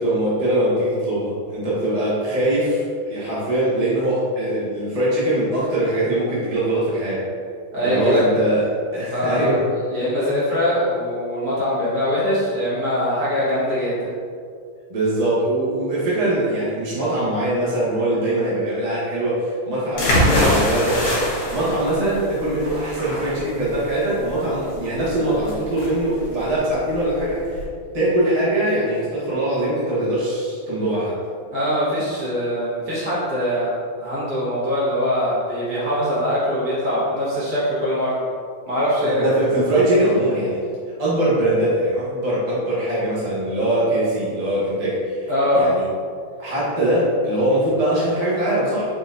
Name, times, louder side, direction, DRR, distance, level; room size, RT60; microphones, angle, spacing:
voice 1, 0.0-7.2 7.8-8.7 8.9-9.6 14.9-27.6 27.9-31.1 39.0-40.6 41.0-45.3 45.5-45.8 46.4-48.9, right 1 dB, 30° right, -9 dB, 0.6 m, -22 dB
voice 2, 7.7-8.2 9.1-9.5 9.9-14.1 31.5-38.2 38.7-39.4 45.3-45.7, left 1 dB, 50° right, -10 dB, 1.8 m, -22 dB
sound 1, 20.0-27.6, equal, 75° left, 1.7 m, -24 dB
4.0 x 3.9 x 2.6 m, 2.2 s
omnidirectional pair, 2.2 m